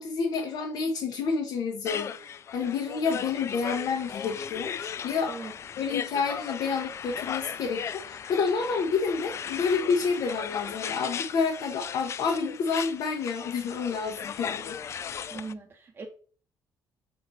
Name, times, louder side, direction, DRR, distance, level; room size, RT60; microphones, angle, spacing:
voice 1, 0.0-2.1 2.5-5.3 5.8-14.7, left 5 dB, 65° left, 1 dB, 1.1 m, -29 dB
sound 1, 1.8-15.5, left 8 dB, 40° left, 0.3 m, -37 dB
voice 2, 15.3-16.1, right 4 dB, 30° right, 2 dB, 0.8 m, -39 dB
4.7 x 4.2 x 5.5 m, 0.42 s
cardioid pair, 145°, 8 cm